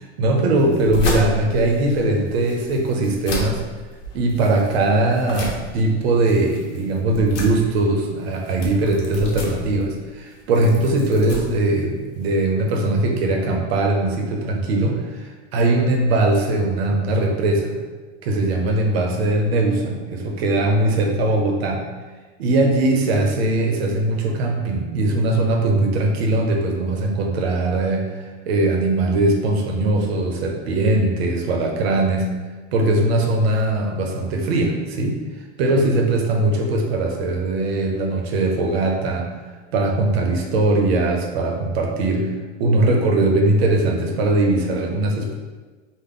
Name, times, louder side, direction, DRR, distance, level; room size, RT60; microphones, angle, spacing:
voice 1, 0.0-3.6 4.1-17.7 18.2-21.8 22.4-32.3 32.7-35.2 35.6-39.3 39.7-42.3 42.6-45.3, right 2 dB, 60° right, 1 dB, 0.6 m, -20 dB
sound 1, 0.6-12.3, equal, 85° left, 0.9 m, -32 dB
3.5 x 2.0 x 3.7 m, 1.3 s
supercardioid pair, 175°, 36 cm